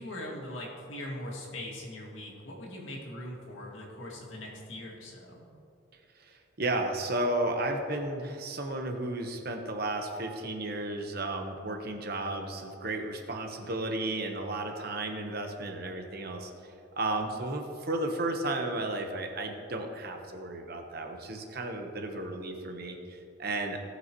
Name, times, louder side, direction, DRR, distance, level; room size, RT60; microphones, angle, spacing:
voice 1, 0.0-5.5, left 1 dB, 75° left, -2 dB, 2.1 m, -41 dB
voice 2, 6.1-23.8, right 2 dB, 50° right, 3 dB, 1.1 m, -33 dB
17.5 x 6.3 x 3.0 m, 2.5 s
head